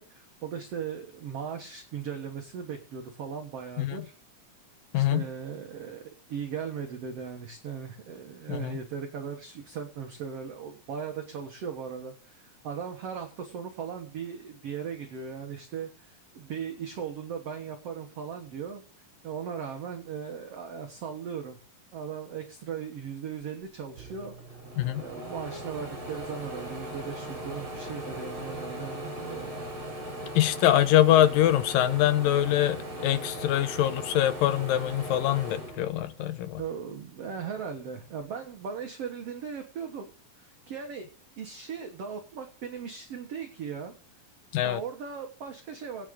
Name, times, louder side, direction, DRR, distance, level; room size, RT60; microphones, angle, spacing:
voice 1, 0.0-4.1 4.9-21.6 21.9-24.6 25.0-29.6 36.6-40.1 40.4-41.1 41.4-43.9 44.6-46.1, right 7 dB, 55° right, 2.0 m, -38 dB
voice 2, 4.9-5.3 8.5-8.8 24.8-25.0 30.4-36.6 44.5-44.8, left 12 dB, 85° left, 2.6 m, -24 dB
sound 1, 23.6-23.7 24.0-36.6 37.0-38.1, right 1 dB, 35° right, 4.8 m, -39 dB
19.5 x 9.1 x 3.7 m
omnidirectional pair, 3.9 m